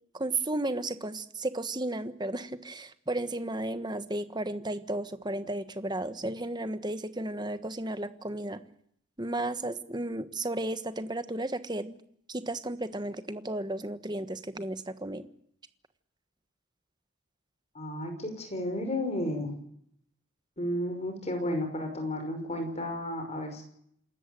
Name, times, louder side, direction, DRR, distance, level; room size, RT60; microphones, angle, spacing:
voice 1, 0.1-8.6 9.2-12.0 12.3-15.3, right 2 dB, 20° right, 11 dB, 1.3 m, -33 dB
voice 2, 17.7-19.5 20.6-23.6, left 1 dB, 30° left, 5 dB, 5.7 m, -32 dB
27.5 x 13.5 x 9.2 m, 0.69 s
head